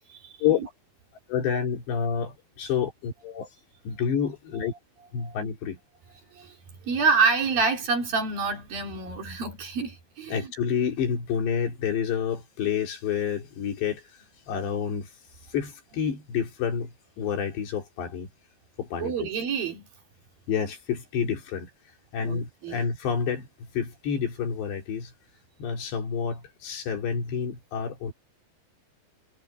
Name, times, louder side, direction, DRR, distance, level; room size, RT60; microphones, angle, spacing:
voice 1, 1.3-3.5 3.9-4.7 5.1-5.8 10.3-14.0 14.5-15.1 15.5-18.3 18.8-19.3 20.5-21.7 22.1-25.1 25.6-28.1, left 7 dB, 60° left, 5.4 m, -29 dB
voice 2, 6.8-10.5 19.0-19.9 22.2-22.8, right 4 dB, 50° right, 4.5 m, -27 dB
omnidirectional pair, 5.7 m